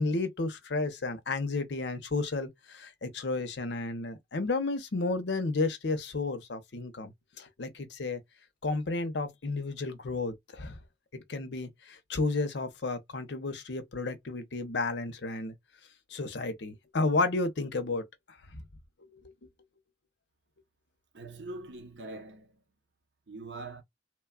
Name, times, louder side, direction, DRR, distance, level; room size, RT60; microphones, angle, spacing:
voice 1, 0.0-8.2 8.6-10.8 11.1-15.5 16.1-18.7 19.1-19.2, left 3 dB, 65° left, 0.7 m, -32 dB
voice 2, 21.1-22.6 23.3-23.8, right 2 dB, 70° right, 0.8 m, -43 dB
3.0 x 2.2 x 2.2 m
head